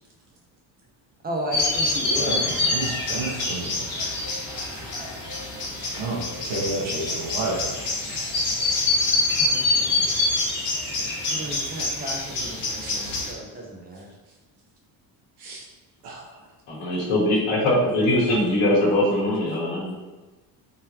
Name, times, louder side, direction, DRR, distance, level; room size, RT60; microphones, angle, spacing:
voice 1, 1.2-2.8 6.8-7.1 9.4-9.8 11.3-14.1, right 1 dB, 20° right, -1 dB, 0.8 m, -34 dB
sound 1, 1.5-13.3, left 2 dB, 45° left, 1.4 m, -26 dB
voice 2, 2.2-3.8 5.8-7.8 12.8-13.0 15.4-15.6 16.0-16.3, right 2 dB, 70° right, -2 dB, 1.2 m, -31 dB
voice 3, 16.7-19.9, left 1 dB, 85° left, -4 dB, 1.5 m, -22 dB
3.8 x 3.0 x 2.8 m, 1.2 s
cardioid pair, 120°, 42 cm